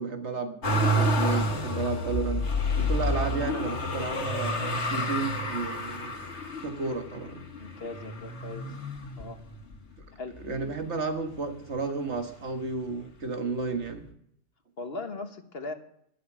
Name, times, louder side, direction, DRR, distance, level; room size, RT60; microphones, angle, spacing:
voice 1, 0.0-2.4 2.8-6.3 6.6-7.4 10.4-14.1, right 4 dB, 75° right, 6 dB, 1.9 m, -32 dB
Motor vehicle (road), 0.6-9.8 10.4-11.2 11.4-12.6 13.6-13.7, equal, 75° left, 2.2 m, -30 dB
voice 2, 7.6-8.8 9.2-9.4 10.2-10.4 14.8-15.7, left 3 dB, 60° left, 7 dB, 1.6 m, -39 dB
12.0 x 11.5 x 6.2 m, 0.70 s
omnidirectional pair, 1.2 m